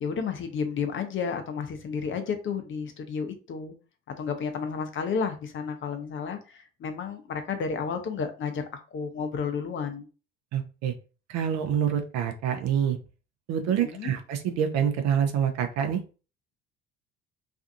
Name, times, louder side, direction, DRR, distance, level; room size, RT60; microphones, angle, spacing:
voice 1, 0.0-3.7 4.2-8.6 8.9-10.1 13.8-14.1, left 6 dB, 35° left, 7 dB, 0.6 m, -31 dB
voice 2, 10.5-10.9 11.3-13.0 13.5-16.0, right 8 dB, 55° right, 6 dB, 0.6 m, -26 dB
2.5 x 2.4 x 2.6 m, 0.34 s
hypercardioid pair, 60°, 33 cm